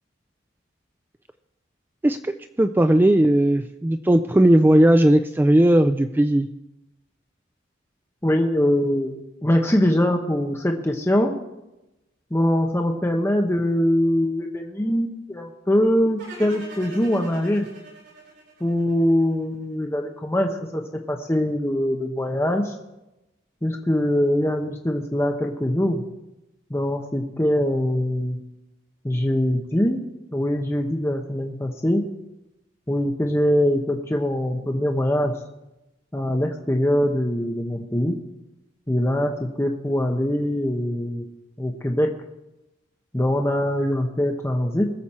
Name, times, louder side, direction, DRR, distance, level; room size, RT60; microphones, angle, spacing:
voice 1, 2.0-6.5, right 1 dB, 10° right, 8 dB, 0.3 m, -17 dB
voice 2, 8.2-11.3 12.3-17.7 18.6-20.8 21.1-22.7 23.6-26.0 26.7-28.4 29.0-30.0 30.3-32.0 32.9-35.3 36.1-38.2 38.9-41.3 41.6-42.1 43.1-44.9, left 1 dB, 15° left, 2 dB, 0.9 m, -22 dB
sound 1, 16.2-19.3, right 2 dB, 65° right, 4.4 m, -42 dB
21.5 x 7.2 x 4.3 m, 0.95 s
head